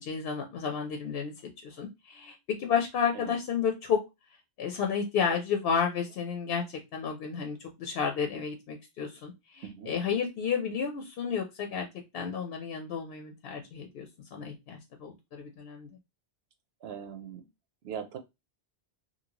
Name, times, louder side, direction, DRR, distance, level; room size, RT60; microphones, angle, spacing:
voice 1, 0.0-1.3 1.6-4.0 4.6-6.6 6.9-11.9 12.1-15.9, left 6 dB, 65° left, 3 dB, 0.8 m, -31 dB
voice 2, 16.8-17.4 17.8-18.2, right 8 dB, 70° right, 7 dB, 0.8 m, -40 dB
2.8 x 2.7 x 2.8 m, 0.22 s
omnidirectional pair, 1.1 m